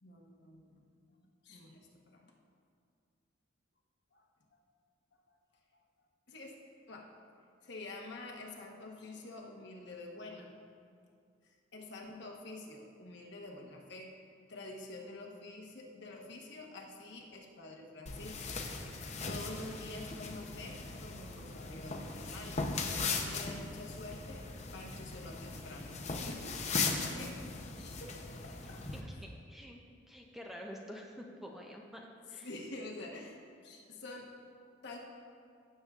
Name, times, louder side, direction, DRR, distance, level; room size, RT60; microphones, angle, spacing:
voice 1, 0.0-2.3 4.1-4.2 5.3-5.4 6.3-6.6 6.9-7.1 7.6-10.5 11.4-14.1 14.5-18.6 19.3-24.4 24.7-26.6 27.0-27.4 27.7-28.2 28.4-28.8 32.4-34.3 34.8-35.0, left 2 dB, 60° left, 0 dB, 1.1 m, -48 dB
sound 1, 18.1-29.0, left 4 dB, 35° left, 0.7 m, -39 dB
voice 2, 26.9-27.3 28.8-29.8 30.1-32.5, equal, ahead, 0 dB, 0.5 m, -48 dB
15.5 x 6.8 x 2.4 m, 2.3 s
head